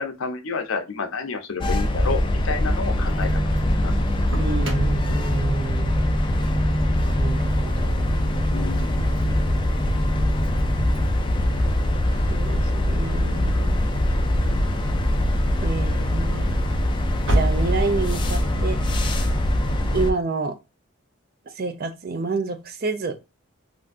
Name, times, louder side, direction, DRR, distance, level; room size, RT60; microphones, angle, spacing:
voice 1, 0.0-3.3 3.8-3.9 8.5-9.1, left 4 dB, 70° left, 0.6 m, -30 dB
sound 1, 1.6-20.1, left 1 dB, 20° left, 0.3 m, -22 dB
Engine starting, 2.5-19.4, equal, 60° right, 1.0 m, -36 dB
sound 2, 3.1-11.1, equal, 30° right, 1.1 m, -31 dB
voice 2, 4.3-5.9 7.2-8.1 12.3-13.8 15.6-16.6 17.3-18.8 19.9-20.5 21.6-23.1, right 4 dB, 45° right, 0.4 m, -28 dB
3.4 x 2.5 x 2.3 m
head